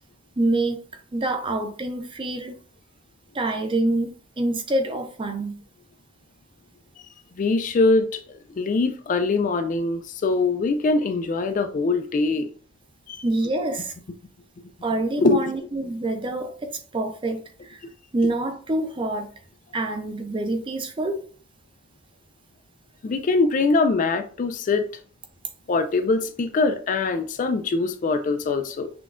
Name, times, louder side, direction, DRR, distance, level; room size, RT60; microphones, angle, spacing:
voice 1, 0.4-0.8 1.1-2.6 3.3-5.6 13.2-13.9 14.8-17.8 18.1-19.3 19.7-21.2, right 2 dB, 25° right, 0.5 m, -26 dB
voice 2, 7.4-8.2 8.5-12.5 13.1-13.2 15.2-15.4 23.0-24.9 25.7-28.9, left 3 dB, 40° left, 0.3 m, -22 dB
5.9 x 2.3 x 2.4 m
head